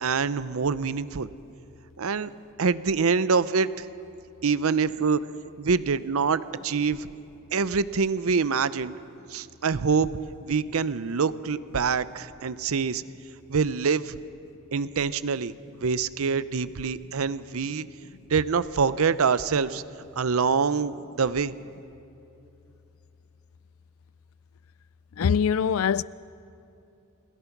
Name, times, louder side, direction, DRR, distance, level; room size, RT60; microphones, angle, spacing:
voice 1, 0.0-1.3 2.0-2.3 2.6-3.9 4.4-5.3 5.6-7.1 7.5-9.0 9.3-10.1 10.4-13.0 13.5-14.2 14.7-17.8 18.3-19.8 20.2-21.5, right 5 dB, 80° right, 0.6 m, -25 dB
voice 2, 25.2-26.0, left 7 dB, 70° left, 0.4 m, -23 dB
29.5 x 17.0 x 6.0 m
head